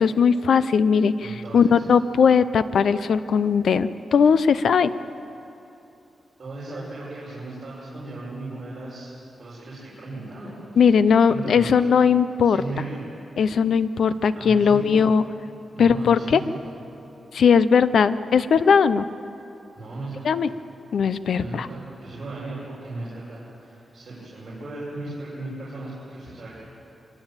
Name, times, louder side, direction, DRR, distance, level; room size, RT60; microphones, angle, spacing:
voice 1, 0.0-4.9 10.8-12.6 13.4-15.2 15.8-16.4 17.3-19.0 20.2-20.5 20.9-21.7, left 6 dB, 70° left, 14 dB, 0.7 m, -19 dB
voice 2, 1.2-1.8 6.4-9.1 9.4-10.9 11.2-11.9 12.4-13.1 14.3-15.2 15.7-16.4 19.7-20.4 21.4-26.5, right 2 dB, 40° right, -8 dB, 6.2 m, -36 dB
23.5 x 18.5 x 9.0 m, 2.9 s
wide cardioid pair, 140°, 0 cm